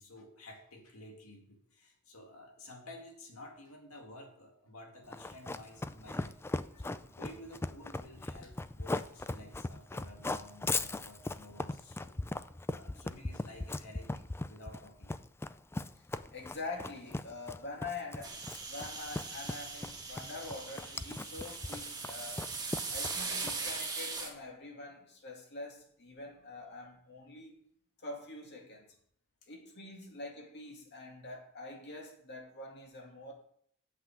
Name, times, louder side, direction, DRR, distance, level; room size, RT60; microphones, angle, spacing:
voice 1, 0.0-6.4 6.8-12.1 12.4-15.2, left 1 dB, 80° left, 2.4 m, -52 dB
Run, 5.1-23.8, left 2 dB, 10° left, 0.3 m, -38 dB
voice 2, 16.3-18.4 18.7-22.5 22.9-27.6 28.0-28.9 29.5-33.3, left 3 dB, 55° left, 2.4 m, -45 dB
sound 1, 18.2-24.3, right 4 dB, 20° right, 2.0 m, -40 dB
7.9 x 5.9 x 7.3 m
head